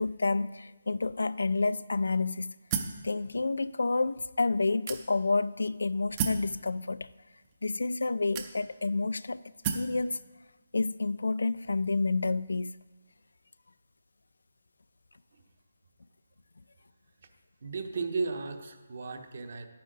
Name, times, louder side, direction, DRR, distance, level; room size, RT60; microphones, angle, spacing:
voice 1, 0.0-2.5 3.0-7.1 7.6-9.4 9.7-10.2 10.7-12.7, left 3 dB, 85° left, 16 dB, 0.3 m, -29 dB
sound 1, 2.7-3.1 3.8-3.9 4.9-5.4 6.2-6.5 7.4-7.5 8.3-8.9 9.6-10.0, right 6 dB, 20° right, 0.5 m, -32 dB
voice 2, 17.6-19.7, right 4 dB, 45° right, 7 dB, 0.9 m, -34 dB
10.5 x 9.1 x 3.9 m, 1.3 s
hypercardioid pair, 175°, 0 cm